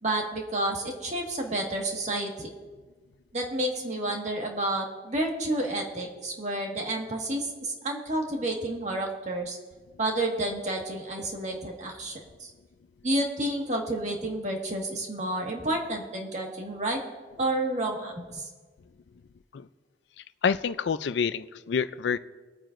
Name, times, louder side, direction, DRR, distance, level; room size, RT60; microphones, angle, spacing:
voice 1, 0.0-2.5 3.3-9.6 10.0-12.5 13.0-17.0 17.4-18.5, right 1 dB, 40° right, 1 dB, 1.7 m, -30 dB
voice 2, 20.4-22.2, left 6 dB, 65° left, 14 dB, 0.4 m, -27 dB
23.0 x 9.0 x 2.5 m, 1.4 s
head